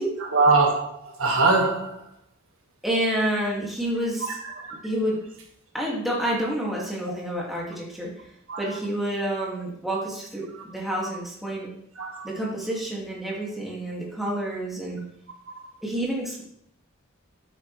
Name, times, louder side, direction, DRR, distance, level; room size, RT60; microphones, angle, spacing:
voice 1, 0.2-2.1 4.4-4.8 8.5-8.8 10.5-10.7 11.0-11.1 12.0-12.3, right 3 dB, 80° right, 1 dB, 1.8 m, -23 dB
voice 2, 2.8-4.3 4.8-5.2 5.7-8.1 8.6-11.7 12.2-15.0 15.8-16.4, right 1 dB, ahead, -4 dB, 2.3 m, -28 dB
9.4 x 8.3 x 3.3 m, 0.70 s
head